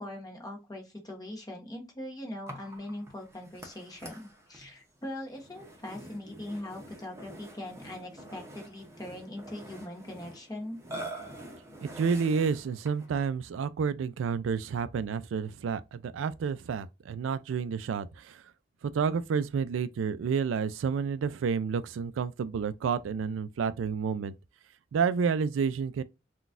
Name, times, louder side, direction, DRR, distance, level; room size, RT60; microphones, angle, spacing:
voice 1, 0.0-10.8, left 1 dB, 20° left, 0.9 m, -41 dB
Burping eructation, 2.5-13.2, right 1 dB, 15° right, 0.8 m, -46 dB
voice 2, 11.8-18.4 18.8-24.3 24.9-26.0, right 6 dB, 85° right, 0.3 m, -30 dB
3.9 x 2.3 x 2.5 m
head